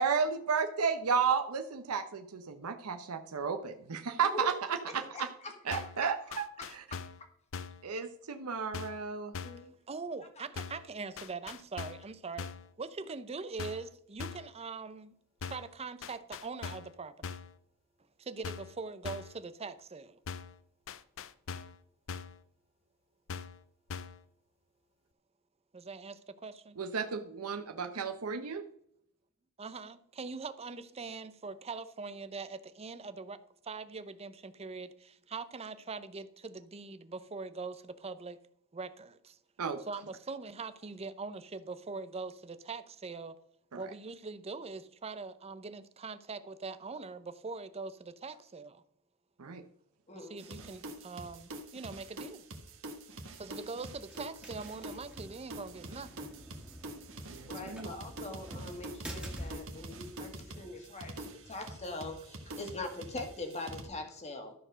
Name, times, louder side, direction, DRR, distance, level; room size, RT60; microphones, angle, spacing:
voice 1, 0.0-5.3 5.6-6.4 7.8-9.3 26.8-28.6 39.6-39.8 43.7-43.8 49.4-49.6 57.3-57.9, right 6 dB, 85° right, 0.8 m, -33 dB
voice 2, 4.9-5.8 6.6-6.7 9.4-9.7 50.1-50.6 57.5-64.5, left 2 dB, 30° left, 1.8 m, -42 dB
sound 1, 5.7-6.0 6.3-7.2 7.5-7.8 8.7-9.1 9.3-9.7 10.6-10.9 11.2-12.1 12.4-12.7 13.6-13.9 14.2-14.5 15.4-15.7 16.0-16.9 17.2-17.5 18.4-18.8 19.0-19.4 20.3-20.6 20.9-21.8 22.1-22.4 23.3-23.6 23.9-24.2, left 5 dB, 60° left, 0.5 m, -42 dB
voice 3, 9.9-12.5 12.8-15.1 15.4-17.4 18.2-20.2 25.7-26.8 29.6-33.4 33.6-38.4 38.7-39.4 39.9-43.4 43.7-48.8 50.1-52.4 53.4-56.3, right 4 dB, 30° right, 0.6 m, -42 dB
sound 2, 50.4-63.9, right 1 dB, 65° right, 1.5 m, -46 dB
sound 3, 53.1-62.7, equal, 5° right, 2.0 m, -50 dB
12.5 x 4.5 x 6.3 m
head